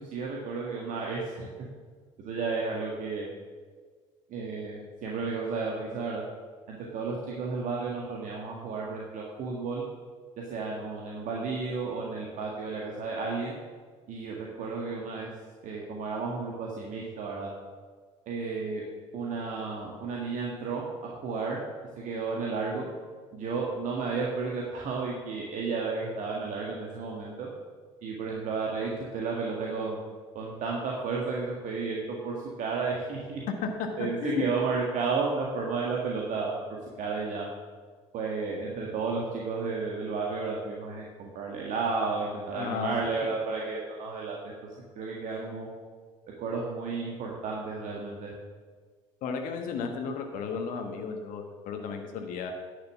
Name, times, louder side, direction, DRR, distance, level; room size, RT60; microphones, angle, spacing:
voice 1, 0.0-1.5 2.2-3.3 4.3-6.2 6.7-9.8 10.5-13.6 14.1-15.3 15.6-17.5 18.3-18.9 19.1-21.6 22.0-22.9 23.3-27.5 28.0-30.0 30.3-33.4 34.0-36.6 37.0-37.5 38.1-44.4 45.0-45.7 46.4-48.3, right 4 dB, 50° right, -2 dB, 1.8 m, -32 dB
voice 2, 42.5-43.0 49.2-52.5, left 5 dB, 55° left, 4 dB, 1.3 m, -33 dB
10.5 x 6.8 x 7.1 m, 1.5 s
figure-of-eight pair, 60°, 17 cm